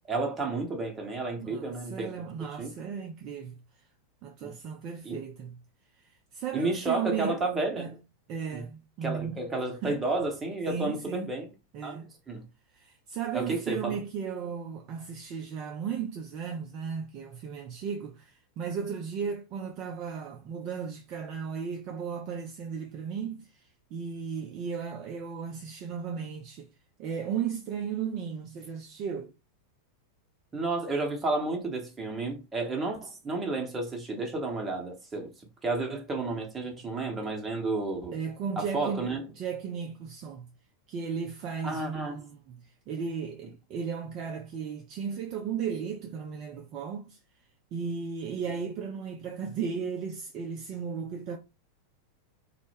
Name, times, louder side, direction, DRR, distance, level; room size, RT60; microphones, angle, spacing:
voice 1, 0.1-2.1 2.6-2.7 4.4-4.5 5.0-5.2 6.5-7.9 8.5-8.6 9.0-11.5 11.8-12.0 12.3-12.4 13.3-14.0 30.5-35.3 35.6-38.1 38.6-39.2 41.6-42.2, right 2 dB, 15° right, 0.8 m, -31 dB
voice 2, 1.4-3.6 4.2-5.6 6.0-7.4 7.8-7.9 8.3-9.4 9.8-10.0 10.7-11.3 11.7-12.1 12.7-26.7 27.0-29.3 38.1-39.1 39.4-40.5 40.9-47.2 47.7-51.4, right 6 dB, 40° right, 0.3 m, -35 dB
2.1 x 2.0 x 3.2 m
figure-of-eight pair, 90°, 0 cm